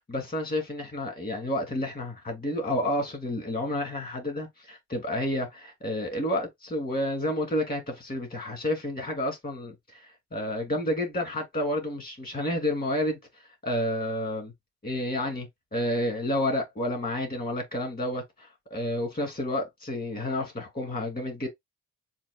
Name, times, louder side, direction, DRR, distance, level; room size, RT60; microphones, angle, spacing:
voice 1, 0.0-13.2 13.6-14.5 14.8-21.5, left 1 dB, 30° left, 2.6 m, -30 dB
7.2 x 2.6 x 2.5 m
cardioid pair, 90°, 30 cm